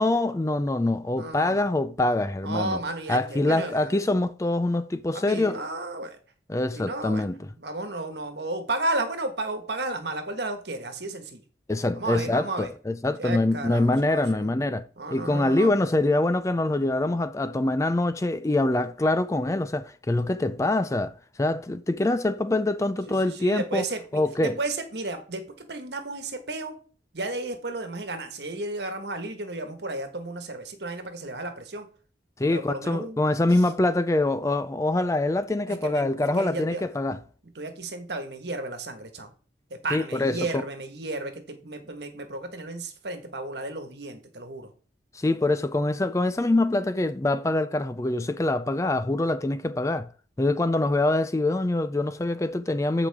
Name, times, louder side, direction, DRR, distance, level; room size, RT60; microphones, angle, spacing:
voice 1, 0.0-2.8 3.1-5.6 6.5-7.4 11.7-23.8 24.1-24.6 32.4-37.2 39.9-40.6 45.1-50.1 50.4-53.1, left 2 dB, 15° left, 0.4 m, -24 dB
voice 2, 1.2-1.7 2.4-3.9 5.1-6.2 6.7-7.2 7.6-11.4 11.9-12.7 13.2-14.5 15.0-15.7 23.1-26.8 27.1-31.9 32.5-33.2 33.5-33.7 35.7-36.8 37.5-39.3 39.7-44.7, right 2 dB, 65° right, 1.6 m, -33 dB
14.5 x 5.0 x 3.6 m
head